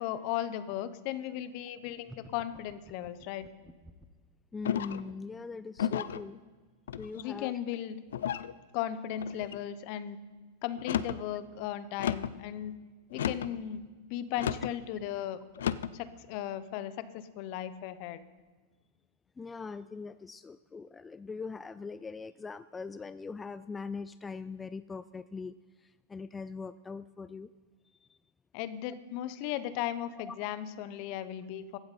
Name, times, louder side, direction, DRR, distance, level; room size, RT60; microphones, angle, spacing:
voice 1, 0.0-3.5 7.1-8.0 8.7-10.2 10.6-12.7 13.1-13.8 14.1-15.4 15.9-18.2 28.5-31.8, left 11 dB, 55° left, 14 dB, 0.9 m, -36 dB
sound 1, 2.0-4.3, equal, 5° right, 1.0 m, -53 dB
voice 2, 4.5-6.4 6.9-7.6 19.4-27.5 28.0-28.2 30.2-30.4, left 4 dB, 15° left, 14 dB, 0.3 m, -41 dB
sound 2, 4.6-5.1 5.8-6.2 6.9-7.4 8.1-8.5 9.2-9.6 10.7-11.2 12.0-12.4 13.1-13.6 14.4-14.7 15.6-16.0, left 9 dB, 75° left, 0.5 m, -33 dB
15.5 x 11.5 x 4.2 m, 1.4 s
hypercardioid pair, 110°, 0 cm